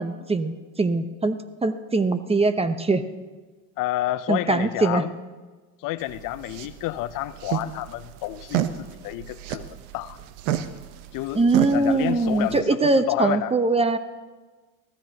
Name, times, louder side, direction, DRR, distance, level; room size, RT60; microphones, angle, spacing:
voice 1, 0.0-3.0 4.3-5.0 11.3-14.0, right 3 dB, 15° right, 0.9 m, -22 dB
voice 2, 3.8-5.1 5.8-10.2 11.1-11.4 11.7-13.5, left 15 dB, 55° left, 0.6 m, -30 dB
sound 1, 6.0-12.6, right 11 dB, 75° right, 1.0 m, -31 dB
23.5 x 15.0 x 2.9 m
hypercardioid pair, 85°, 41 cm